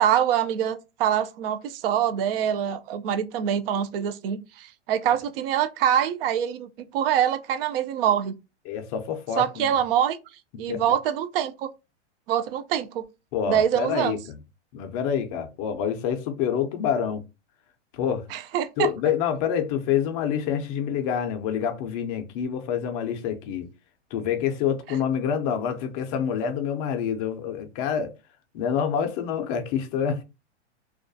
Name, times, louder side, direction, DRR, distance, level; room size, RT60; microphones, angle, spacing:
voice 1, 0.0-8.4 9.4-10.2 10.6-11.7 12.3-13.0 13.5-14.2 18.3-18.9, right 9 dB, 55° right, 0.4 m, -24 dB
voice 2, 8.7-9.7 10.7-10.8 13.3-14.4 14.7-17.2 17.9-18.3 18.8-23.7 24.1-28.1 28.5-30.2, left 8 dB, 35° left, 0.4 m, -27 dB
2.3 x 2.2 x 2.5 m
hypercardioid pair, 130°, 36 cm